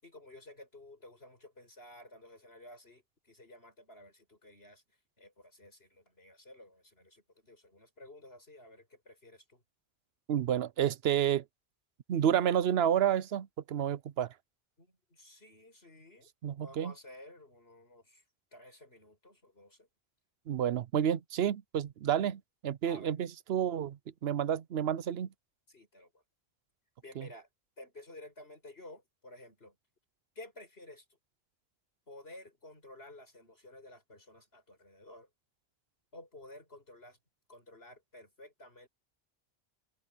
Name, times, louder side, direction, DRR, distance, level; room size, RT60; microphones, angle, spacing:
voice 1, 0.0-4.8 5.2-9.6 14.8-16.3 16.6-18.2 18.5-19.9 22.8-23.2 25.7-26.2 27.0-27.5 27.8-29.8 30.4-31.1 32.1-35.3 36.1-37.2 37.5-38.9, left 1 dB, 75° left, 7.4 m, -53 dB
voice 2, 10.3-11.4 12.1-14.3 16.4-16.9 20.5-25.3 27.2-27.3, right 9 dB, 80° right, 0.9 m, -30 dB
omnidirectional pair, 1.0 m